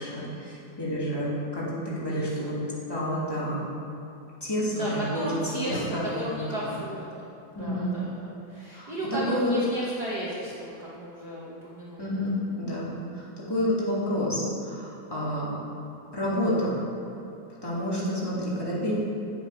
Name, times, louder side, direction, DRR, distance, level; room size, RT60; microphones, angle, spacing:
voice 1, 0.0-2.6 2.9-3.6 4.4-5.2 5.6-6.4 7.5-8.0 8.7-8.9 9.3-9.5 12.0-15.5 16.1-16.8 17.6-18.9, equal, 10° left, -8 dB, 1.6 m, -29 dB
voice 2, 2.0-2.7 4.6-7.3 7.6-8.0 8.5-12.4, right 1 dB, 85° right, -7 dB, 0.8 m, -35 dB
8.2 x 7.9 x 5.1 m, 2.8 s
omnidirectional pair, 3.6 m